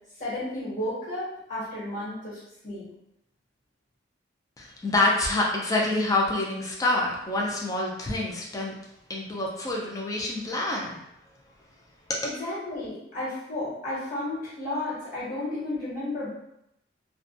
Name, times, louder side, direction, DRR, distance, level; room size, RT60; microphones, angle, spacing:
voice 1, 0.2-2.9 12.2-16.3, left 1 dB, 50° left, -9 dB, 1.3 m, -33 dB
voice 2, 4.6-8.7 9.1-11.0 12.1-12.2, left 2 dB, 20° left, -2 dB, 0.4 m, -27 dB
2.5 x 2.2 x 2.5 m, 0.81 s
head